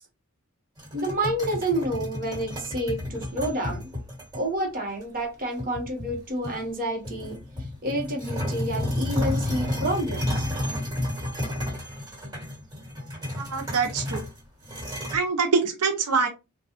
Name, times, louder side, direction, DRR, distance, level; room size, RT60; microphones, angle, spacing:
sound 1, 0.8-4.4 5.0-5.1 5.6-6.7 7.0-15.2, left 1 dB, 15° right, 1.7 m, -31 dB
voice 1, 0.9-3.9 4.3-7.4 7.8-10.5, right 1 dB, 40° right, 2 dB, 1.0 m, -29 dB
voice 2, 13.4-14.2 15.1-16.3, right 5 dB, 85° right, 5 dB, 0.6 m, -24 dB
4.0 x 2.3 x 2.9 m, 0.26 s
head